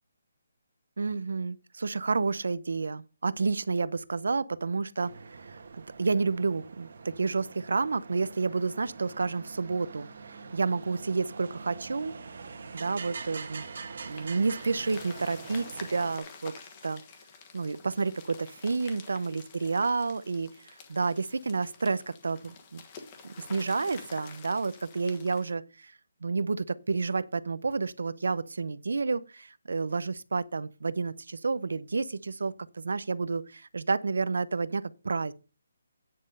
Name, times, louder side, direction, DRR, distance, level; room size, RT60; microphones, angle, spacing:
voice 1, 1.0-12.1 12.7-13.6 14.1-16.5 16.8-17.0 17.5-22.8 23.4-25.9 26.2-35.3, right 4 dB, 80° right, 0.7 m, -30 dB
sound 1, 5.0-16.2, right 4 dB, 50° right, 1.6 m, -44 dB
sound 2, 14.1-25.5, left 5 dB, 20° left, 1.3 m, -49 dB
9.6 x 5.4 x 5.4 m
hypercardioid pair, 175°, 0 cm